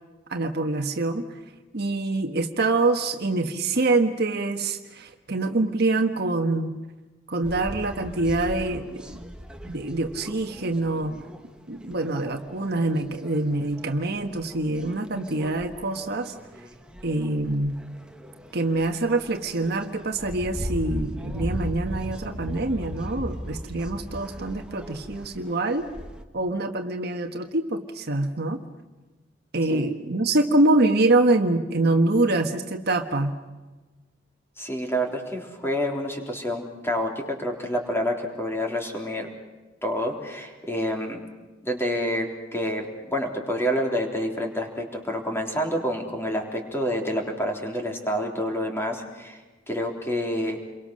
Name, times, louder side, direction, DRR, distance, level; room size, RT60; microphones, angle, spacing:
voice 1, 0.3-1.2 1.7-6.7 7.3-9.2 9.7-11.1 11.7-16.3 17.0-17.8 18.5-25.9 26.3-28.6 29.5-33.3, right 2 dB, 55° right, 6 dB, 1.4 m, -25 dB
sound 1, 7.4-26.2, equal, 5° right, 1.4 m, -38 dB
voice 2, 34.6-39.3 39.8-41.2 41.6-49.4 49.7-50.6, equal, 15° left, 1 dB, 3.6 m, -28 dB
28.5 x 23.5 x 6.5 m, 1.2 s
head